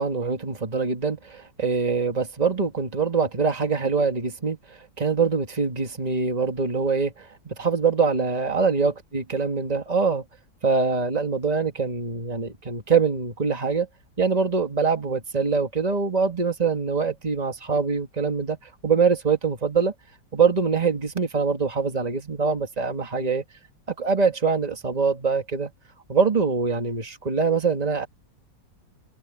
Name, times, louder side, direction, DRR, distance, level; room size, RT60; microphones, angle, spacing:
voice 1, 0.0-4.6 5.0-10.2 10.6-13.9 14.2-18.6 18.8-19.9 20.3-23.4 23.9-25.7 26.1-28.1, right 5 dB, 20° right, 2.1 m, -24 dB
omnidirectional pair, 1.9 m